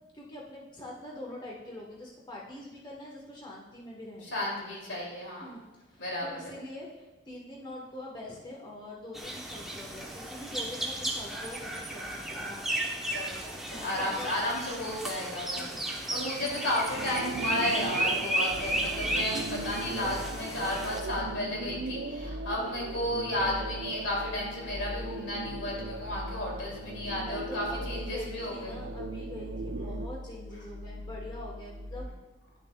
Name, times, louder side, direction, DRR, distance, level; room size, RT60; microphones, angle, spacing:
voice 1, 0.1-4.4 5.4-5.6 5.9-12.7 13.7-14.4 15.6-16.0 22.6-23.0 27.2-32.1, left 1 dB, 25° left, -3 dB, 1.1 m, -44 dB
voice 2, 4.3-5.5 6.0-6.5 13.1-28.7 29.8-29.9, left 1 dB, 75° left, -3 dB, 2.5 m, -33 dB
sound 1, 9.1-21.0, right 1 dB, ahead, 0.8 m, -34 dB
sound 2, 16.9-30.1, right 4 dB, 80° right, 0.5 m, -40 dB
sound 3, 18.5-32.1, left 1 dB, 50° left, 1.5 m, -42 dB
10.5 x 6.5 x 2.3 m, 1.2 s
head